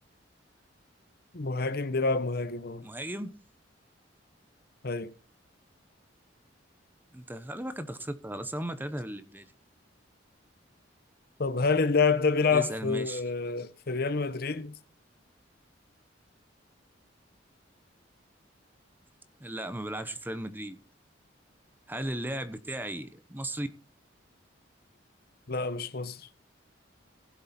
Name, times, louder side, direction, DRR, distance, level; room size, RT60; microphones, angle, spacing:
voice 1, 1.3-2.9 4.8-5.1 11.4-14.8 25.5-26.3, left 4 dB, 55° left, 0.9 m, -28 dB
voice 2, 2.8-3.3 7.1-9.5 12.5-13.2 19.4-20.8 21.9-23.7, right 1 dB, 10° right, 0.9 m, -36 dB
16.5 x 7.5 x 4.3 m
head